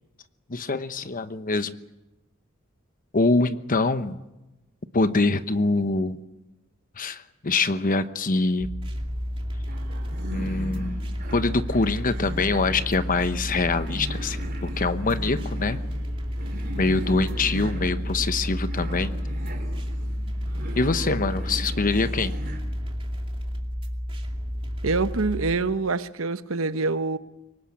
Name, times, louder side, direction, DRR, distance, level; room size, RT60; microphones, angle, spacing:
voice 1, 0.5-1.8 3.1-4.2 4.9-6.2 7.0-8.7 10.3-11.0 11.3-15.8 16.8-19.1 20.8-22.3, left 3 dB, 40° left, 1.0 m, -24 dB
sound 1, 8.6-25.5, equal, 25° right, 2.5 m, -31 dB
sound 2, 9.7-22.6, right 1 dB, 50° right, 3.9 m, -39 dB
voice 2, 24.8-27.2, right 3 dB, 70° right, 1.0 m, -25 dB
24.0 x 19.5 x 8.6 m
head